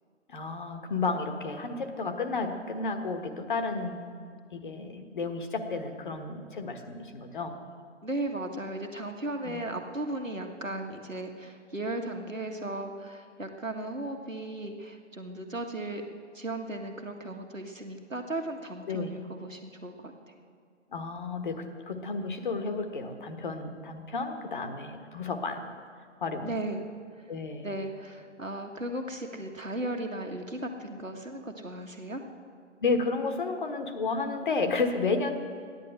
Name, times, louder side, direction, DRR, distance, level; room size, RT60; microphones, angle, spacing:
voice 1, 0.3-4.0 4.5-7.6 9.4-9.6 18.9-19.1 20.9-25.7 26.2-26.5 27.3-27.7 32.8-35.3, left 4 dB, 40° left, 6 dB, 1.4 m, -32 dB
voice 2, 8.0-16.0 16.3-20.3 26.4-26.9 27.6-32.2, right 1 dB, 90° right, 3 dB, 1.8 m, -36 dB
15.0 x 10.5 x 7.8 m, 2.1 s
figure-of-eight pair, 140°, 38 cm